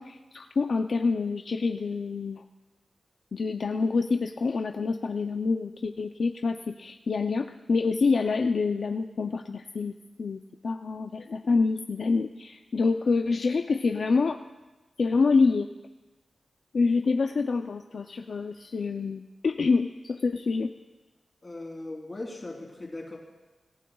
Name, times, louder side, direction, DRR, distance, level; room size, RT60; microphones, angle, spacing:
voice 1, 0.0-2.4 3.3-14.4 15.0-15.7 16.7-20.7, left 4 dB, 60° left, 5 dB, 0.5 m, -27 dB
voice 2, 21.4-23.2, left 2 dB, 30° left, -1 dB, 3.3 m, -38 dB
27.0 x 15.5 x 2.3 m, 1.2 s
wide cardioid pair, 140°, 0 cm